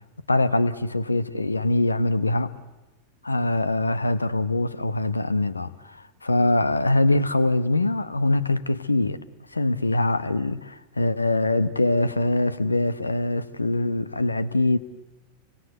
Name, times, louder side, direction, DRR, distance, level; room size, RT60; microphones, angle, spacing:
voice 1, 0.3-2.6 3.2-9.2 9.5-14.8, left 2 dB, 80° left, 1.1 m, -23 dB
30.0 x 24.0 x 8.1 m
figure-of-eight pair, 90°, 0 cm